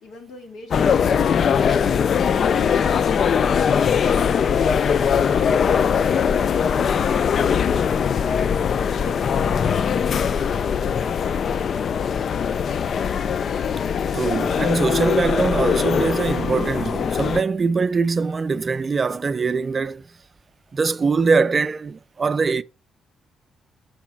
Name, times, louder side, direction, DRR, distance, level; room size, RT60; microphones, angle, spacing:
voice 1, 0.0-0.1, left 3 dB, 70° left, 1.6 m, -43 dB
sound 1, 0.7-17.4, left 7 dB, 55° left, 0.3 m, -21 dB
voice 2, 14.1-20.1 20.7-22.6, right 4 dB, 35° right, 0.4 m, -22 dB
7.1 x 4.7 x 4.4 m
cardioid pair, 90°, 0 cm